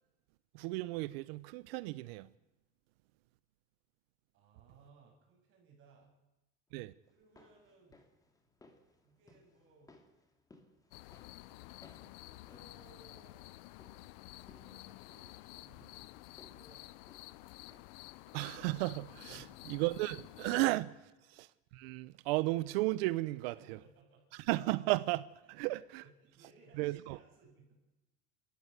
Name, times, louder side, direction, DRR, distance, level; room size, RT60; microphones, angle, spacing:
voice 1, 0.5-2.3 6.7-6.9 18.3-20.9 21.3-21.5 21.7-23.8 24.5-26.0 26.8-27.2, right 19 dB, 85° right, 0.9 m, -34 dB
voice 2, 4.3-6.1 7.1-8.0 9.0-10.0 11.3-13.7 14.4-17.4 19.3-19.7 21.0-21.2 23.5-24.4 25.4-25.5 26.0-27.8, right 3 dB, 45° right, 7.5 m, -63 dB
sound 1, 7.1-18.1 18.4-18.5, left 2 dB, 10° left, 2.4 m, -65 dB
sound 2, 10.9-20.7, left 19 dB, 70° left, 0.8 m, -52 dB
28.5 x 14.5 x 8.2 m
cardioid pair, 160°, 29 cm